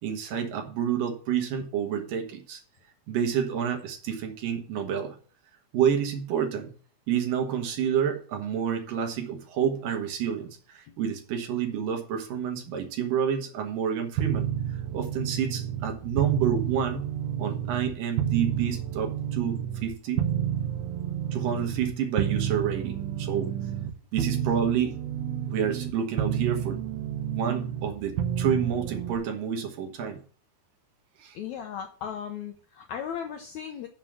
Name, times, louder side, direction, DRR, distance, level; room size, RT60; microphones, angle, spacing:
voice 1, 0.0-2.6 3.1-5.2 5.7-6.7 7.1-17.1 17.4-20.3 21.3-23.5 24.1-25.0 25.5-26.8 27.3-30.2 31.2-31.4, right 8 dB, 70° right, 4 dB, 3.0 m, -29 dB
sound 1, 14.2-17.9 18.2-23.9 24.2-25.9 26.2-29.2, right 10 dB, 85° right, 2.7 m, -30 dB
voice 2, 31.3-33.9, left 8 dB, 75° left, 5 dB, 1.7 m, -36 dB
7.6 x 5.7 x 7.5 m, 0.41 s
omnidirectional pair, 4.2 m